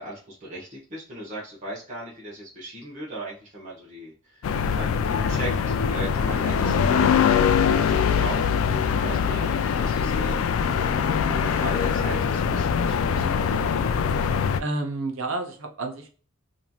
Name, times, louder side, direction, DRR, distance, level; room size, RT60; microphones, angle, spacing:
voice 1, 0.0-10.4 11.0-13.7, right 1 dB, 35° right, -6 dB, 0.9 m, -38 dB
sound 1, 4.4-14.6, left 7 dB, 80° left, 0.3 m, -23 dB
voice 2, 14.6-16.1, right 2 dB, 75° right, 3 dB, 0.7 m, -30 dB
3.0 x 2.6 x 2.3 m, 0.40 s
head